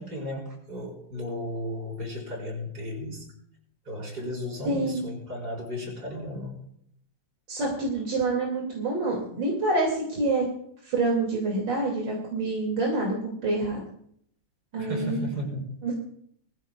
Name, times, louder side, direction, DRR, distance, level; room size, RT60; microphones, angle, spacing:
voice 1, 0.0-3.3 3.8-6.6 14.8-15.7, equal, 60° right, -2 dB, 5.0 m, -34 dB
voice 2, 4.7-5.0 7.5-10.5 10.8-13.8 14.7-15.3 15.8-15.9, right 2 dB, 85° right, -2 dB, 3.1 m, -27 dB
20.5 x 15.0 x 2.3 m, 0.67 s
omnidirectional pair, 1.9 m